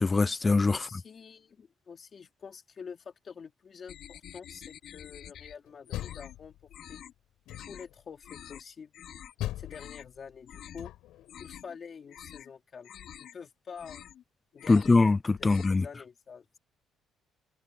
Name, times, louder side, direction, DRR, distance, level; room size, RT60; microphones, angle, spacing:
voice 1, 0.0-0.9 14.7-15.9, left 3 dB, 15° left, 0.4 m, -23 dB
voice 2, 0.7-6.5 6.9-7.0 7.7-8.9 9.6-10.9 11.4-12.9 13.2-14.1 14.5-15.0 15.4-16.5, left 6 dB, 30° left, 3.6 m, -47 dB
sound 1, 3.9-5.6 5.9-6.4 6.7-7.1 7.5-7.9 8.2-8.6 8.9-9.3 9.6-10.1 10.5-10.8 11.2-11.8 12.1-12.5 12.8-13.3 13.7-14.2 14.5-15.0 15.3-15.9, left 10 dB, 55° left, 5.3 m, -48 dB
Door, 5.7-6.9 7.5-8.0 9.4-11.3, left 14 dB, 80° left, 6.0 m, -40 dB
cardioid pair, 170°, 0 cm